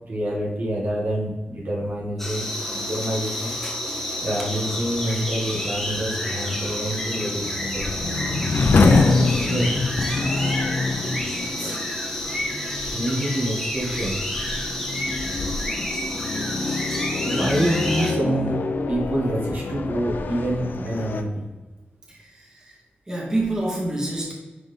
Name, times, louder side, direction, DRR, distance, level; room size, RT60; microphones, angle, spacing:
voice 1, 0.0-2.4 2.7-3.5 4.2-8.2 9.4-9.8 11.6-11.8 12.9-14.2 17.2-21.5, right 1 dB, 55° right, -4 dB, 1.9 m, -27 dB
sound 1, 2.2-18.1, left 1 dB, 5° left, 1.4 m, -29 dB
sound 2, 4.2-21.2, left 3 dB, 60° left, 0.6 m, -26 dB
voice 2, 22.1-22.8 23.1-24.3, right 2 dB, 20° right, -4 dB, 1.9 m, -27 dB
10.5 x 4.2 x 3.5 m, 1.3 s
wide cardioid pair, 140°, 4 cm